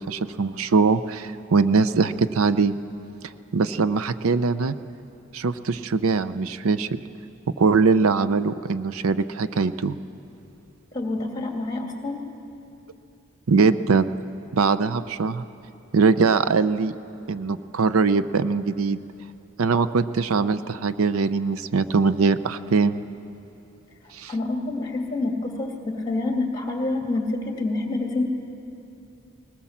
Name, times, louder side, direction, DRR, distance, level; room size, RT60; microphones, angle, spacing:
voice 1, 0.0-2.8 3.5-4.7 5.3-7.0 7.6-10.0 13.5-14.1 14.5-15.4 15.9-16.9 17.3-19.0 19.6-23.0 24.1-24.3, right 4 dB, 80° right, 13 dB, 0.6 m, -21 dB
voice 2, 10.9-12.2 24.3-28.2, left 2 dB, 20° left, 2 dB, 2.2 m, -27 dB
20.5 x 18.5 x 7.2 m, 2.8 s
head